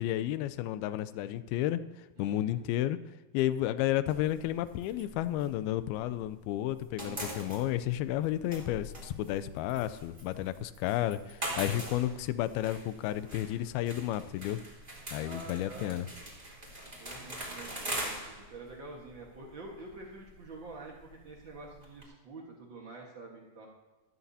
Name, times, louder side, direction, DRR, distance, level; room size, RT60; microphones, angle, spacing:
voice 1, 0.0-3.0 3.3-14.6 15.1-16.1, left 13 dB, 80° left, 13 dB, 2.3 m, -32 dB
voice 2, 2.2-2.6 15.1-16.0 17.0-23.7, right 3 dB, 85° right, -1 dB, 1.0 m, -47 dB
sound 1, 4.1-6.3 6.6-22.0, right 1 dB, 15° right, 2.6 m, -43 dB
15.0 x 13.5 x 2.8 m, 1.2 s
omnidirectional pair, 4.7 m